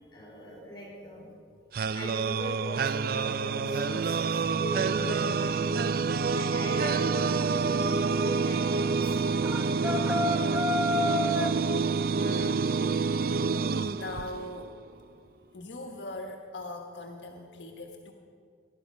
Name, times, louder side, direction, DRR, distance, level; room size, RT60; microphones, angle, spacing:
voice 1, 0.1-1.3 1.9-5.9 6.3-9.2, equal, 25° left, -5 dB, 4.7 m, -40 dB
sound 1, 1.7-14.7, right 4 dB, 50° right, 0.3 m, -28 dB
sound 2, 9.4-11.6, left 2 dB, 10° right, 0.9 m, -29 dB
voice 2, 12.2-12.6 13.9-14.7 15.5-18.1, left 2 dB, 75° left, 3 dB, 1.3 m, -40 dB
19.0 x 11.5 x 5.3 m, 2.2 s
head